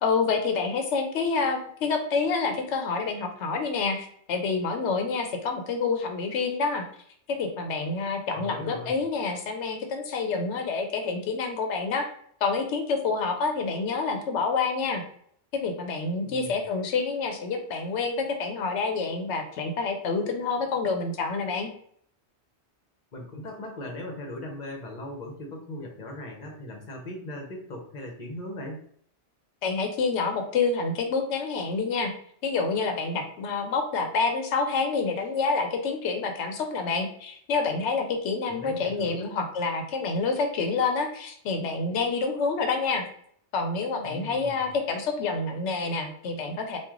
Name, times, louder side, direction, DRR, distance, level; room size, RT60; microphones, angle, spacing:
voice 1, 0.0-6.8 7.3-12.1 12.4-15.0 15.5-21.7 29.6-32.1 32.4-43.0 43.5-46.8, left 4 dB, 90° left, 5 dB, 0.9 m, -28 dB
voice 2, 8.3-9.0 16.2-16.6 23.1-28.8 38.5-39.3 44.0-44.7, left 1 dB, 45° left, 2 dB, 0.9 m, -39 dB
3.1 x 2.4 x 3.6 m, 0.63 s
omnidirectional pair, 1.2 m